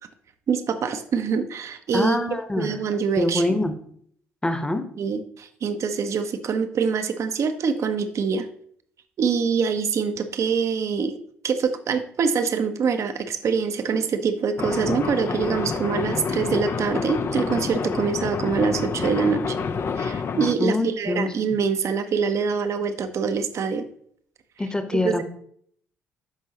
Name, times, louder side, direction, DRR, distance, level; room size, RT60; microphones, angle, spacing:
voice 1, 0.5-3.4 5.0-8.5 9.2-11.2 11.4-19.6 20.0-23.8 25.0-25.2, right 5 dB, 50° right, 8 dB, 0.8 m, -25 dB
voice 2, 1.9-2.8 3.2-3.7 4.4-4.8 20.6-21.3 24.6-25.2, left 2 dB, 10° left, 8 dB, 1.1 m, -24 dB
sound 1, 14.6-20.6, left 5 dB, 40° left, 0.6 m, -28 dB
12.0 x 5.4 x 2.9 m, 0.63 s
figure-of-eight pair, 45°, 7 cm